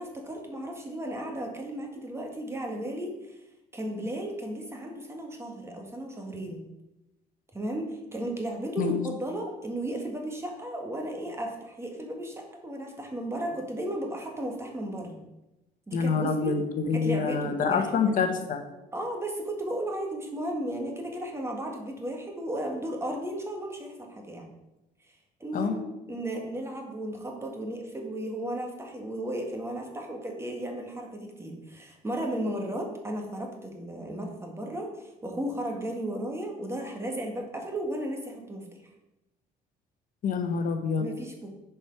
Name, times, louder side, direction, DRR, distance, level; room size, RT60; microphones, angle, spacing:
voice 1, 0.0-3.4 3.7-6.6 7.5-15.2 15.9-16.6 16.9-18.2 18.9-24.5 25.4-25.8 26.1-38.8 41.0-41.5, right 1 dB, 15° right, 2 dB, 1.6 m, -34 dB
voice 2, 15.9-18.6 25.5-25.8 40.2-41.1, left 5 dB, 55° left, 6 dB, 1.2 m, -26 dB
7.3 x 4.7 x 5.8 m, 0.96 s
cardioid pair, 110°, 17 cm